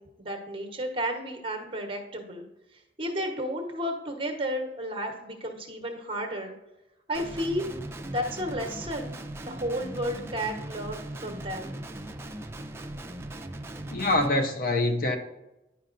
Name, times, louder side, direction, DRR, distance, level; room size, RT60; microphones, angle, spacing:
voice 1, 0.0-2.4 2.7-6.5 7.1-7.7 8.1-11.7, equal, 30° right, 1.0 m, -32 dB
Guitar, 7.1-14.3, right 1 dB, 15° right, 0.4 m, -39 dB
voice 2, 13.9-15.2, left 2 dB, 55° left, 0.7 m, -25 dB
9.9 x 5.5 x 2.5 m
head